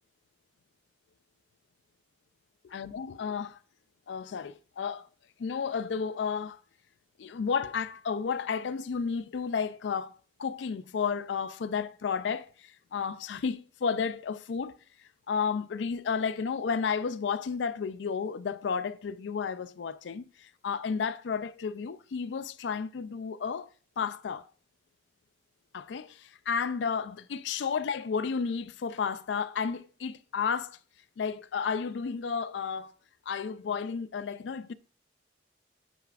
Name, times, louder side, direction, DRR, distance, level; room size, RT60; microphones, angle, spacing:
voice 1, 2.7-3.6 4.1-5.1 5.4-6.6 7.2-10.1 10.4-14.8 15.3-23.7 24.0-24.4 25.7-30.8 31.2-32.9 33.3-34.7, left 6 dB, 75° left, 0.4 m, -32 dB
9.0 x 4.7 x 2.4 m
head